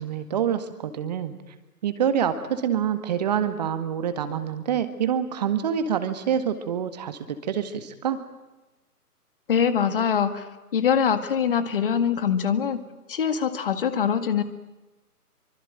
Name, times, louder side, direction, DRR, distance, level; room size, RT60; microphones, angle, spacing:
voice 1, 0.0-1.4 1.8-8.2, right 8 dB, 25° right, 10 dB, 1.8 m, -26 dB
voice 2, 9.5-12.8 13.1-14.4, left 7 dB, 35° left, 11 dB, 1.9 m, -23 dB
25.5 x 24.5 x 9.1 m, 1.1 s
figure-of-eight pair, 140°, 47 cm